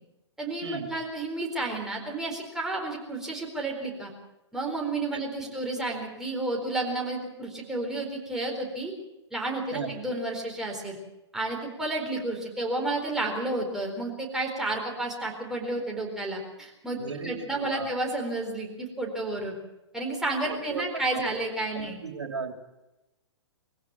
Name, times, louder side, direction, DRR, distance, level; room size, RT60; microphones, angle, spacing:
voice 1, 0.4-4.1 4.5-8.9 9.3-11.0 11.3-19.6 19.9-22.0, right 2 dB, 5° right, -1 dB, 4.2 m, -31 dB
voice 2, 17.0-17.9 20.4-20.9 21.1-21.3 21.7-22.5, right 5 dB, 70° right, 6 dB, 2.9 m, -36 dB
22.0 x 16.0 x 7.6 m, 0.97 s
figure-of-eight pair, 120°, 15 cm